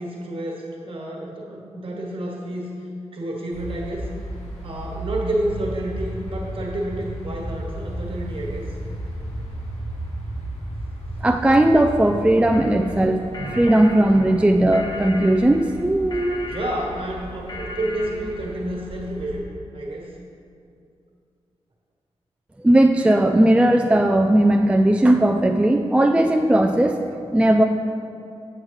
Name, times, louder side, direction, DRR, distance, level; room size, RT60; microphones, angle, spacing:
voice 1, 0.0-2.7 3.1-4.1 4.6-8.7 16.4-19.4 19.7-20.1, right 1 dB, 55° right, -2 dB, 1.5 m, -29 dB
sound 1, 3.5-19.4, right 1 dB, 85° left, 1.6 m, -36 dB
sound 2, 5.5-12.9, equal, 10° left, 0.8 m, -36 dB
voice 2, 11.2-16.5 22.6-27.0 27.3-27.6, right 1 dB, 10° right, 4 dB, 0.3 m, -17 dB
sound 3, 12.5-18.6, left 2 dB, 40° left, 0.7 m, -37 dB
7.8 x 7.2 x 3.2 m, 2.5 s
cardioid pair, 70°, 11 cm